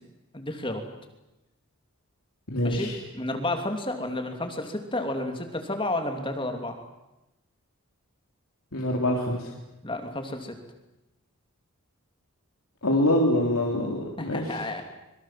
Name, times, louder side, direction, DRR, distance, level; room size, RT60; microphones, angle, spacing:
voice 1, 0.3-0.8 2.6-2.9 3.1-6.7 9.8-10.5 14.2-14.8, left 1 dB, 25° left, 5 dB, 2.9 m, -31 dB
voice 2, 2.5-3.0 8.7-9.5 12.8-14.6, left 1 dB, 70° left, -1 dB, 3.6 m, -25 dB
26.5 x 23.5 x 7.7 m, 0.95 s
head